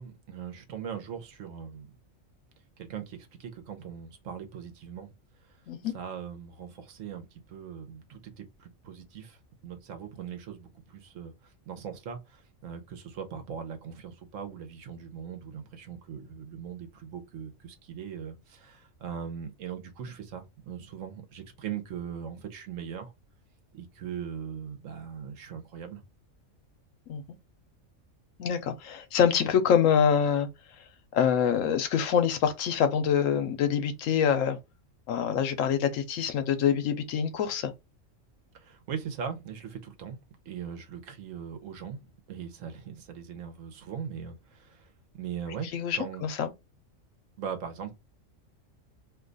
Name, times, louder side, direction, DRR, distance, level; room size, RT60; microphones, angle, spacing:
voice 1, 0.0-1.9 2.8-5.1 5.9-9.4 9.6-11.3 11.7-23.1 23.7-26.0 38.6-40.2 40.5-44.8 45.1-46.3 47.4-47.9, right 7 dB, 80° right, 1.1 m, -40 dB
voice 2, 28.4-30.5 31.1-34.6 35.1-37.7 45.6-46.5, left 8 dB, 80° left, 1.0 m, -25 dB
2.7 x 2.3 x 3.8 m
omnidirectional pair, 1.3 m